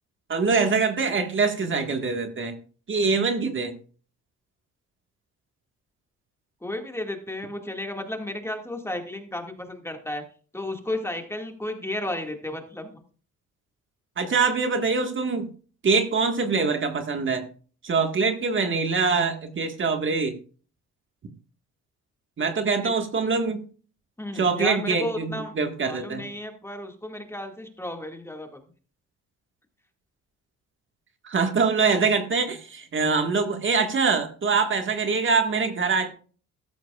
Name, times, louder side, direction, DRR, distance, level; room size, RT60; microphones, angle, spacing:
voice 1, 0.3-2.6 2.9-3.8 14.2-15.5 15.8-17.4 17.8-20.3 22.4-23.6 24.3-26.2 31.2-36.1, right 4 dB, 40° right, 5 dB, 1.7 m, -24 dB
voice 2, 6.6-10.2 10.5-13.0 24.2-25.5 25.8-28.6, left 1 dB, 10° left, 3 dB, 2.0 m, -33 dB
14.0 x 12.5 x 2.4 m, 0.40 s
cardioid pair, 90°, 30 cm